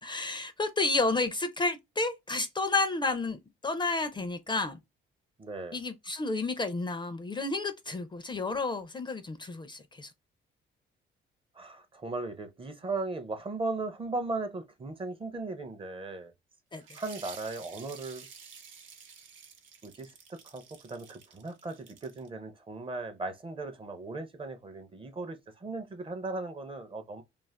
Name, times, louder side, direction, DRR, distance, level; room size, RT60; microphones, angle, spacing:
voice 1, 0.0-4.8 5.7-10.1 16.7-16.8, left 3 dB, 25° left, 0.4 m, -31 dB
voice 2, 5.4-5.8 11.5-16.3 16.9-18.3 19.8-27.2, right 3 dB, 25° right, 0.5 m, -37 dB
sound 1, 16.8-22.3, right 6 dB, 75° right, 0.7 m, -51 dB
2.4 x 2.4 x 3.3 m
cardioid pair, 90°, 20 cm